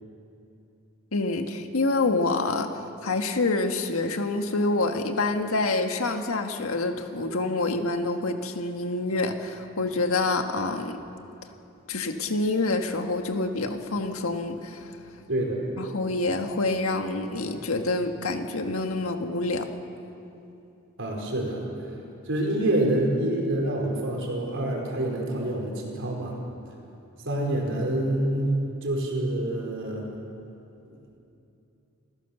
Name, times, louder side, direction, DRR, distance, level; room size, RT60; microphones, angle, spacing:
voice 1, 1.1-11.0 11.9-15.0 15.8-19.7, left 2 dB, 85° left, 5 dB, 1.6 m, -27 dB
voice 2, 15.3-15.6 21.0-21.6 22.3-26.4 27.2-28.5 28.8-30.1, right 1 dB, 60° right, 0 dB, 4.6 m, -27 dB
27.5 x 15.5 x 7.0 m, 2.8 s
head